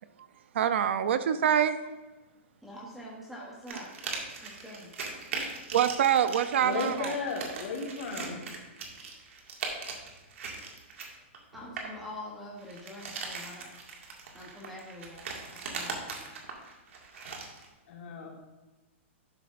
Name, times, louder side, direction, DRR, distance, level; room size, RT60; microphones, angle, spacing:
voice 1, 0.5-1.8 5.7-7.2, right 9 dB, 65° right, 12 dB, 0.5 m, -25 dB
voice 2, 2.6-3.9 4.4-4.9 11.5-13.7 14.3-16.4, left 1 dB, ahead, -4 dB, 0.9 m, -45 dB
sound 1, 3.7-12.0 12.6-17.7, right 4 dB, 80° right, 2.0 m, -40 dB
voice 3, 6.6-8.4 17.9-18.3, left 4 dB, 65° left, -1 dB, 2.4 m, -34 dB
11.5 x 7.7 x 2.5 m, 1.1 s
hypercardioid pair, 170°, 7 cm